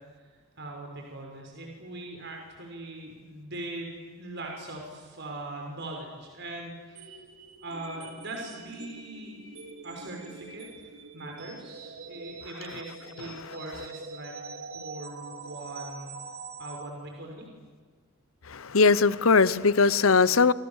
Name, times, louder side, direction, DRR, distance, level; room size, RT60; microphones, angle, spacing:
voice 1, 0.6-7.1 7.6-9.4 9.8-10.6 11.1-14.3 14.7-16.1 16.6-17.5, right 2 dB, 55° right, 1 dB, 6.0 m, -40 dB
sound 1, 7.0-16.9, right 4 dB, 90° right, 4.1 m, -44 dB
voice 2, 13.2-13.9 18.5-20.5, left 4 dB, 80° left, 18 dB, 0.9 m, -22 dB
28.5 x 28.0 x 7.4 m, 1.5 s
head